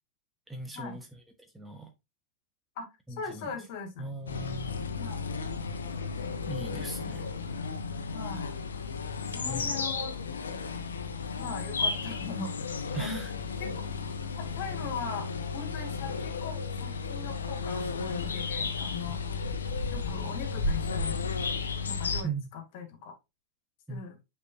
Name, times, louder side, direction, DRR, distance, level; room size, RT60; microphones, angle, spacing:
voice 1, 0.5-1.2 1.5-1.9 3.1-3.5 4.0-4.9 6.5-7.3 9.5-9.7 12.9-13.3 19.1-19.2 22.2-22.5 23.9-24.0, right 3 dB, 5° right, 1.3 m, -38 dB
voice 2, 2.8-4.1 5.0-5.2 8.1-8.5 9.3-10.2 11.4-12.5 13.0-13.2 13.6-13.8 14.4-19.2 19.9-21.2 21.9-23.1 23.9-24.2, left 5 dB, 50° left, 2.2 m, -40 dB
sound 1, 4.3-22.2, left 4 dB, 70° left, 1.0 m, -33 dB
9.6 x 4.6 x 2.7 m
figure-of-eight pair, 90°, 0 cm